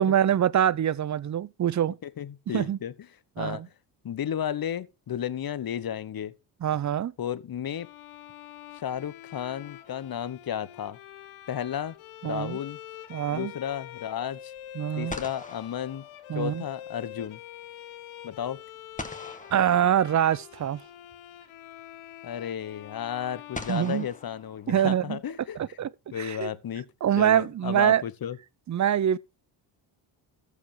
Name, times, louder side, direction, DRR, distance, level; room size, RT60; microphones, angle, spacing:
voice 1, 0.0-2.0 2.5-2.8 3.4-3.7 6.6-7.1 12.2-12.6 13.1-13.5 14.7-15.2 16.3-16.6 19.5-20.8 23.7-24.1 24.7-25.2 25.6-25.9 26.2-26.5 27.0-28.0 28.7-29.2, right 10 dB, 35° right, 0.6 m, -24 dB
voice 2, 2.0-2.9 3.4-3.6 4.0-6.3 7.2-7.9 8.7-11.0 11.5-11.9 12.2-12.8 13.3-14.5 15.0-16.0 16.3-17.4 18.2-18.6 22.2-25.8 26.1-26.9 27.2-28.4, left 9 dB, 45° left, 1.1 m, -33 dB
Bowed string instrument, 7.7-24.7, left 12 dB, 75° left, 1.2 m, -45 dB
sound 1, 9.6-10.5 14.6-14.7 15.1-16.8 19.0-20.6 21.9-22.0 23.5-25.2, left 2 dB, 15° left, 1.8 m, -43 dB
14.0 x 5.0 x 4.9 m
supercardioid pair, 65°, 50 cm